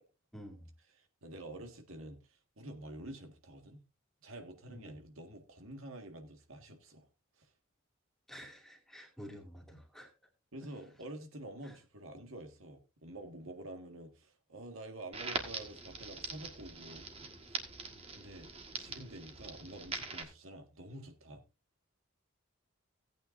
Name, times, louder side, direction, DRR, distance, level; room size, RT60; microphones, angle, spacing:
voice 1, 0.3-0.7 4.7-4.9 8.3-10.1 10.6-10.7 11.6-11.8, equal, ahead, 2.3 m, -50 dB
voice 2, 1.0-3.8 4.2-7.1 7.4-7.5 10.5-17.3 18.1-18.5 18.8-21.4, right 1 dB, 75° right, 1.7 m, -48 dB
Crackle, 15.1-20.2, right 4 dB, 25° right, 1.5 m, -43 dB
16.5 x 8.9 x 2.6 m
head